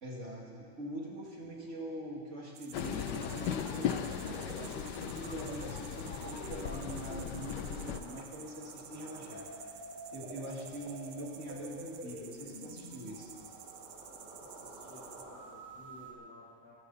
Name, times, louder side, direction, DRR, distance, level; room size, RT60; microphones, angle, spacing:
voice 1, 0.0-3.7 4.2-9.4 10.1-13.3, right 1 dB, 40° right, -3 dB, 2.5 m, -43 dB
sound 1, 2.5-15.5, right 9 dB, 70° right, 1.2 m, -52 dB
Train, 2.7-8.0, left 9 dB, 80° left, 1.3 m, -38 dB
sound 2, 3.2-16.1, right 1 dB, 25° right, 1.8 m, -49 dB
voice 2, 14.4-16.8, left 2 dB, 55° left, -5 dB, 2.0 m, -56 dB
24.0 x 11.5 x 4.1 m, 2.4 s
omnidirectional pair, 1.9 m